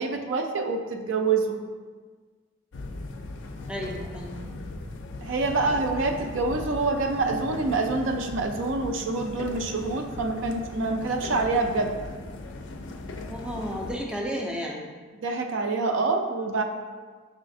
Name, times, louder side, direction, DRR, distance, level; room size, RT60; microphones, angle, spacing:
voice 1, 0.0-1.6 5.2-12.0 15.2-16.6, right 3 dB, 70° right, 5 dB, 0.4 m, -26 dB
sound 1, 2.7-14.0, left 2 dB, 65° left, 0.4 m, -38 dB
voice 2, 3.7-4.4 13.3-14.9, equal, 5° right, -1 dB, 0.4 m, -33 dB
5.0 x 3.1 x 2.6 m, 1.5 s
head